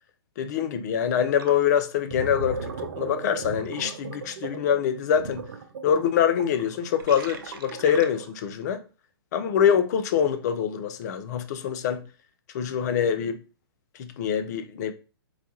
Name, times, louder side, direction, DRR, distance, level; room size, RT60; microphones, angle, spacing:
voice 1, 0.4-2.7 3.0-5.4 5.8-8.8 9.3-12.0 12.5-13.4 14.0-14.9, left 8 dB, 40° left, 0.4 m, -24 dB
Gurgling, 1.4-1.6 2.0-8.4, right 5 dB, 55° right, 0.5 m, -37 dB
4.0 x 2.2 x 2.8 m
figure-of-eight pair, 125°, 13 cm